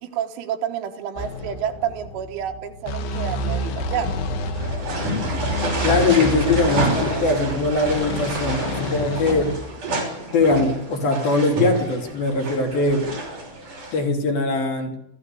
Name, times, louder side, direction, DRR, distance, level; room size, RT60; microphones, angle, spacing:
voice 1, 0.0-4.2, right 9 dB, 75° right, 6 dB, 3.8 m, -29 dB
sound 1, 1.2-9.6, left 1 dB, 70° left, 4.6 m, -29 dB
sound 2, 4.5-14.0, right 1 dB, 40° right, 7.3 m, -28 dB
voice 2, 5.8-9.5 10.3-13.1 13.9-14.9, left 2 dB, 50° left, 2 dB, 4.7 m, -21 dB
26.5 x 15.0 x 8.5 m, 0.85 s
omnidirectional pair, 5.8 m